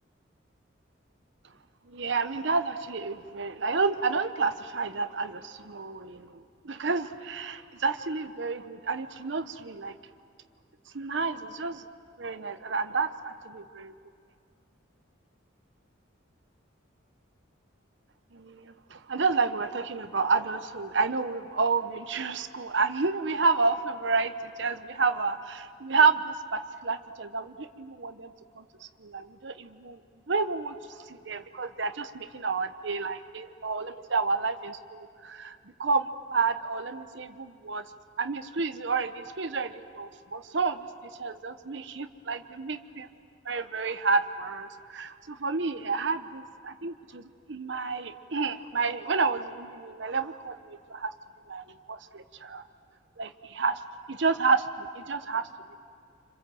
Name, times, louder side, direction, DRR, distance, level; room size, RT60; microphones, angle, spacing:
voice 1, 1.9-10.0 10.9-11.8 12.2-13.9 18.3-28.6 29.0-30.0 30.3-30.7 31.1-35.5 35.8-37.8 38.2-40.9 41.2-43.1 43.5-51.1 51.5-52.6 53.2-53.8 54.1-55.5, right 4 dB, 65° right, 10 dB, 0.9 m, -30 dB
27.0 x 26.0 x 7.7 m, 2.2 s
head